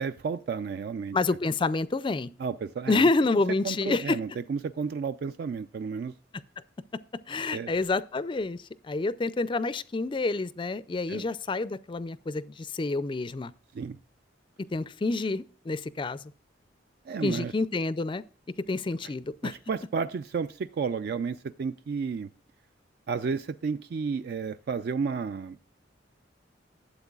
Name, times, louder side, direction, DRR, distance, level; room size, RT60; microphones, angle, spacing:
voice 1, 0.0-1.2 2.4-3.1 3.6-6.1 7.5-7.7 11.1-11.3 13.7-14.0 17.1-17.5 19.4-22.3 23.1-25.6, right 5 dB, 55° right, 0.3 m, -32 dB
voice 2, 1.1-2.3 2.9-4.2 7.3-13.5 14.7-16.2 17.2-18.2 18.7-19.5, left 3 dB, 25° left, 0.4 m, -28 dB
12.0 x 8.1 x 2.3 m
head